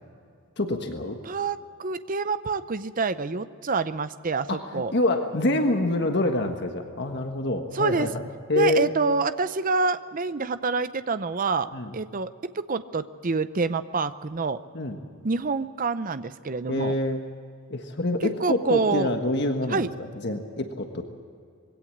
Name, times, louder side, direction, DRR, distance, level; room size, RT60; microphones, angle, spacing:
voice 1, 0.6-1.2 4.5-8.9 11.7-11.9 14.7-15.0 16.7-17.2 17.7-21.1, left 1 dB, 50° left, 5 dB, 1.5 m, -26 dB
voice 2, 1.2-4.9 7.7-8.1 8.5-12.3 12.5-14.6 15.2-16.9 18.4-19.1 19.7-19.9, right 4 dB, 40° right, 13 dB, 0.6 m, -27 dB
21.5 x 17.0 x 8.7 m, 2.3 s
head